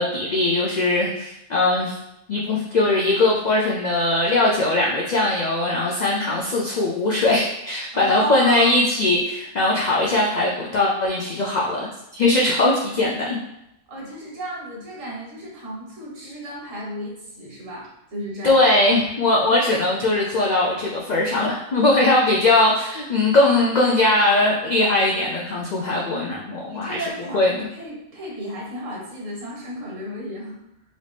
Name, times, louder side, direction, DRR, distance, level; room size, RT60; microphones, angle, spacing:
voice 1, 0.0-2.0 2.3-11.9 12.1-13.4 18.4-27.0 27.3-27.7, left 2 dB, 80° left, -3 dB, 0.4 m, -20 dB
voice 2, 7.9-8.7 13.9-18.6 26.7-27.4 27.7-30.6, right 1 dB, 90° right, -3 dB, 1.5 m, -33 dB
3.1 x 2.6 x 3.2 m, 0.83 s
omnidirectional pair, 1.3 m